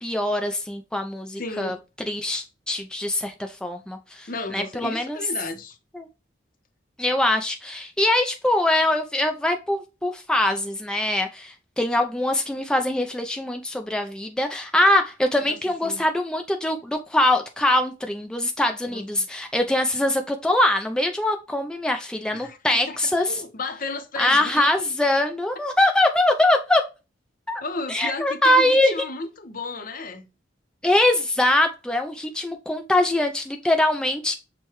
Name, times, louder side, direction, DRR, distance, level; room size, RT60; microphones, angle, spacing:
voice 1, 0.0-1.7 2.1-5.2 5.9-6.1 7.0-23.3 24.2-26.8 27.5-27.6 27.9-28.9 30.8-34.3, left 1 dB, 5° left, 0.3 m, -23 dB
voice 2, 1.4-1.8 4.3-5.8 15.4-16.0 18.9-19.3 22.3-22.6 22.9-24.8 27.6-30.3, left 3 dB, 50° left, 0.6 m, -34 dB
6.3 x 2.2 x 2.9 m
head